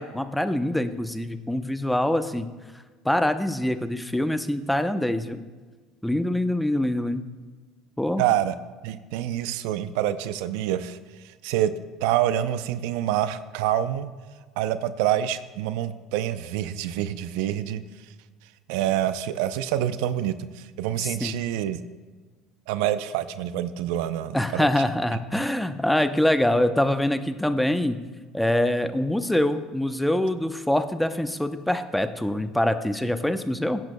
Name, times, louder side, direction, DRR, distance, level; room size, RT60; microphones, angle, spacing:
voice 1, 0.0-2.5 3.0-5.4 6.0-7.2 8.0-8.2 21.0-21.4 24.3-28.0 28.3-33.8, left 1 dB, 5° left, 9 dB, 0.7 m, -24 dB
voice 2, 8.2-8.5 8.8-11.0 11.4-11.7 12.0-14.1 14.6-17.8 18.7-21.8 22.7-24.7, right 11 dB, 75° right, 13 dB, 0.5 m, -26 dB
16.5 x 10.5 x 2.2 m, 1.4 s
supercardioid pair, 85°, 0 cm